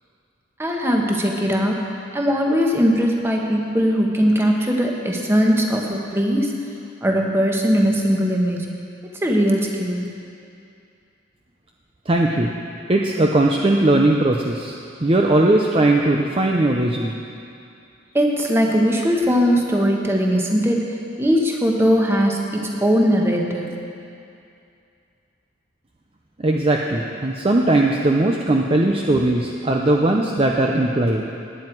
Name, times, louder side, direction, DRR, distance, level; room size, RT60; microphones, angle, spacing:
voice 1, 0.6-1.8 2.1-6.5 7.0-8.7 9.2-10.1 18.1-23.7, equal, 15° right, 0 dB, 1.2 m, -20 dB
voice 2, 12.1-12.5 12.9-17.2 26.4-31.2, right 2 dB, 30° right, 1 dB, 0.6 m, -19 dB
18.0 x 9.6 x 4.6 m, 2.5 s
head